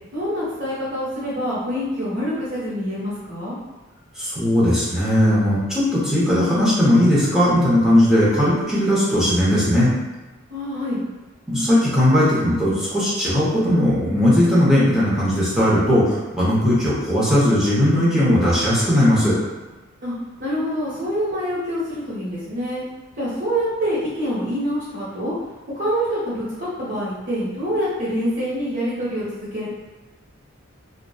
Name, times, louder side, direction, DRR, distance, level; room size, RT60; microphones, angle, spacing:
voice 1, 0.1-3.6 10.5-11.0 20.0-20.1 20.4-22.8 23.2-25.3 25.7-29.7, equal, 55° right, -14 dB, 1.0 m, -26 dB
voice 2, 4.1-9.9 11.5-19.3, equal, 5° right, -9 dB, 0.8 m, -18 dB
2.6 x 2.3 x 2.3 m, 1.2 s
head